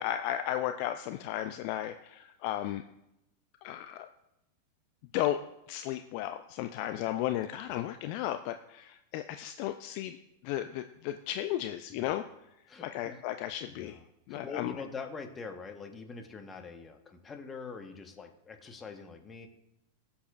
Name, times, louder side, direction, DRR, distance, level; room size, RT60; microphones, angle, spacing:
voice 1, 0.0-2.8 3.6-4.1 5.1-5.4 5.7-10.2 10.4-12.2 12.8-14.0 14.3-14.7, left 12 dB, 50° left, 9 dB, 0.4 m, -34 dB
voice 2, 12.7-13.2 13.6-14.0 14.3-19.5, left 5 dB, 20° left, 7 dB, 1.2 m, -44 dB
17.5 x 7.0 x 2.5 m, 0.86 s
figure-of-eight pair, 95°, 0 cm